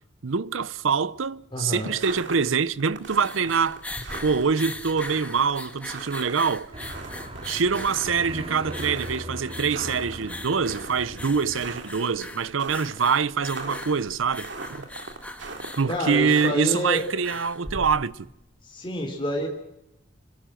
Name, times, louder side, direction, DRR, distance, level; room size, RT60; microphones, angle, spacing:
voice 1, 0.2-3.8 4.2-6.7 7.4-14.9 15.8-18.3, right 5 dB, 80° right, 0.7 m, -25 dB
voice 2, 1.5-1.9 15.9-17.0 18.6-19.5, equal, 25° left, 3.6 m, -28 dB
sound 1, 1.9-16.5, right 3 dB, 60° right, 2.6 m, -40 dB
sound 2, 2.9-18.4, left 1 dB, 5° left, 1.6 m, -40 dB
sound 3, 6.7-11.8, equal, 30° right, 3.2 m, -39 dB
26.0 x 16.5 x 7.5 m
head